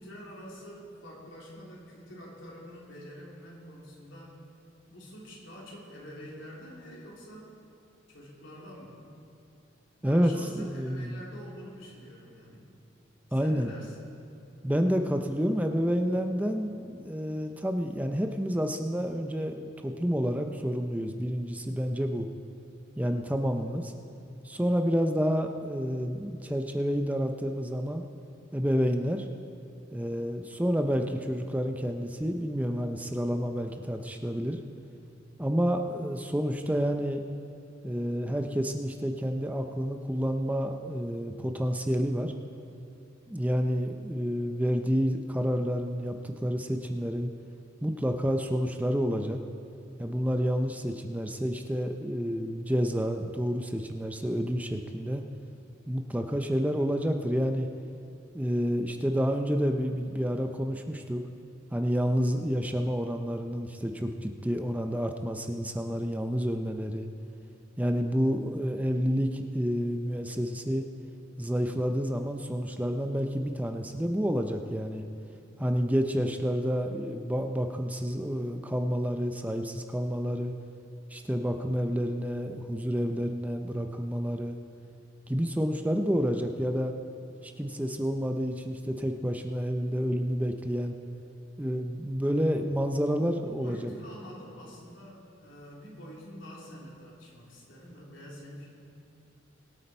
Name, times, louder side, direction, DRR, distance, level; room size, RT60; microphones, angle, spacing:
voice 1, 0.0-4.4 4.9-7.6 8.1-9.0 10.0-12.7 13.3-13.9 93.1-98.7, equal, 80° left, -4 dB, 3.3 m, -46 dB
voice 2, 10.0-11.2 13.3-13.7 14.6-22.3 23.0-23.9 24.4-28.0 28.5-29.3 29.9-34.6 35.4-37.2 37.8-42.3 43.3-47.3 47.8-49.4 50.0-55.2 55.9-57.7 58.3-61.2 61.7-67.1 67.8-70.8 71.4-75.0 75.6-80.5 81.1-84.6 85.3-86.9 87.4-90.9 91.6-93.9, equal, 10° right, 5 dB, 0.5 m, -29 dB
22.5 x 8.3 x 4.4 m, 2.6 s
head